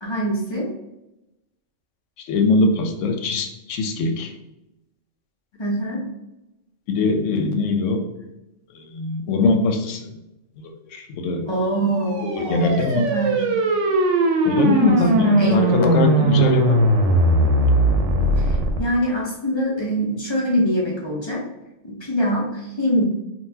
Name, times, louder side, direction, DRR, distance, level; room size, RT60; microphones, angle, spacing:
voice 1, 0.0-0.7 5.6-6.0 11.5-13.4 14.8-15.6 18.4-21.4 21.8-23.0, equal, 30° left, -3 dB, 0.6 m, -24 dB
voice 2, 2.2-4.3 6.9-8.0 8.7-10.1 10.6-11.5 12.2-13.1 14.4-16.8, left 3 dB, 80° left, 4 dB, 0.9 m, -21 dB
sound 1, 11.9-18.8, right 2 dB, 80° right, 1.0 m, -19 dB
3.9 x 2.4 x 2.7 m, 0.93 s
omnidirectional pair, 1.3 m